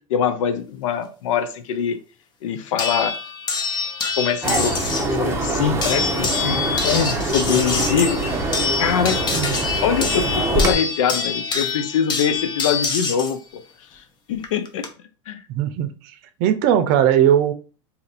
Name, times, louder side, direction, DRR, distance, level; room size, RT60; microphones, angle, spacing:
voice 1, 0.1-2.0 2.4-3.1 4.2-8.4 8.8-9.2 9.8-13.4 14.3-14.8 15.3-15.4, left 7 dB, 85° left, 9 dB, 0.6 m, -23 dB
sound 1, 2.8-5.2 5.8-13.3 14.4-14.9, left 5 dB, 25° left, 0.7 m, -25 dB
sound 2, 4.4-10.7, right 2 dB, 15° right, 0.7 m, -24 dB
voice 2, 15.5-15.9 16.4-17.5, right 10 dB, 55° right, 9 dB, 0.6 m, -18 dB
2.8 x 2.6 x 4.0 m, 0.35 s
supercardioid pair, 120°, 16 cm